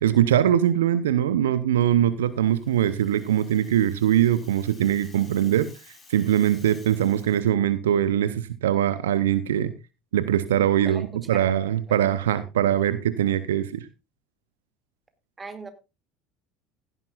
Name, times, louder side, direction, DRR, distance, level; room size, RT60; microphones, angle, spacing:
voice 1, 0.0-5.7 6.1-9.7 10.1-13.9, right 11 dB, 75° right, 14 dB, 0.7 m, -22 dB
Rattle (instrument), 2.3-7.5, left 3 dB, 25° left, 4.2 m, -53 dB
voice 2, 10.8-11.5 11.9-12.0 15.4-15.7, right 4 dB, 20° right, 8 dB, 2.3 m, -39 dB
16.0 x 11.0 x 2.4 m, 0.27 s
figure-of-eight pair, 70°, 0 cm